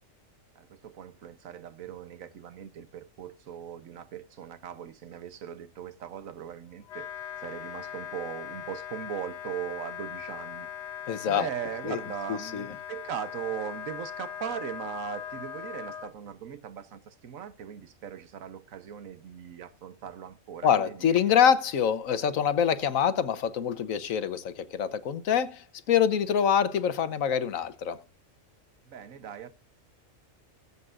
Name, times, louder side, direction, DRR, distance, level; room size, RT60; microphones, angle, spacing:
voice 1, 0.6-21.3 28.8-29.5, right 9 dB, 85° right, 1.3 m, -39 dB
Wind instrument woodwind instrument, 6.8-16.1, left 9 dB, 60° left, 1.1 m, -40 dB
voice 2, 11.1-11.5 11.8-12.0 12.3-12.7 20.6-28.0, left 8 dB, 80° left, 1.3 m, -25 dB
19.0 x 8.2 x 2.5 m
omnidirectional pair, 1.4 m